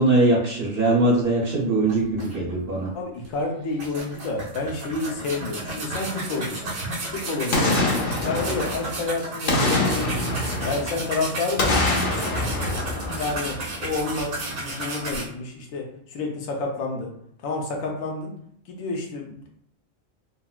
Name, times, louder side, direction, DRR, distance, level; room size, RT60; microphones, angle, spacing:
voice 1, 0.0-2.9, right 2 dB, 50° right, -3 dB, 0.8 m, -21 dB
sound 1, 1.5-1.6 1.9-2.8 3.2-3.3 3.8-15.2, right 2 dB, 85° right, 1.3 m, -33 dB
voice 2, 2.9-6.7 7.1-7.9 8.2-10.2 10.6-12.7 13.2-14.4 14.6-17.1 17.4-18.3 18.7-19.5, left 3 dB, 85° left, 1 dB, 1.1 m, -29 dB
Boom, 7.5-9.0 9.5-11.1 11.6-13.8 14.2-14.3, left 2 dB, 55° left, 0.6 m, -25 dB
3.8 x 2.0 x 2.2 m, 0.68 s
omnidirectional pair, 1.4 m